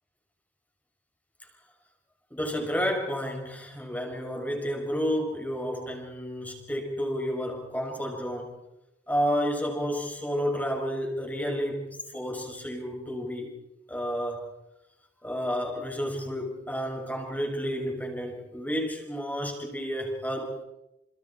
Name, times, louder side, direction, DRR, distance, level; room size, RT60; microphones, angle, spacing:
voice 1, 2.3-8.5 9.1-13.5 13.9-14.5 15.2-20.6, equal, 10° left, 1 dB, 5.7 m, -31 dB
29.5 x 29.0 x 4.4 m, 0.96 s
head